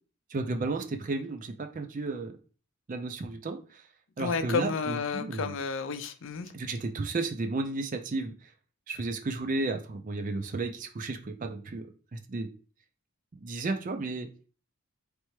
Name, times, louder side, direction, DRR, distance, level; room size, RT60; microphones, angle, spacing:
voice 1, 0.3-2.4 2.9-3.8 4.2-5.5 6.5-8.5 8.9-12.5 13.3-14.3, right 3 dB, 35° right, 7 dB, 0.4 m, -33 dB
voice 2, 4.2-6.5, left 5 dB, 55° left, 10 dB, 0.4 m, -31 dB
4.1 x 3.3 x 3.1 m, 0.39 s
head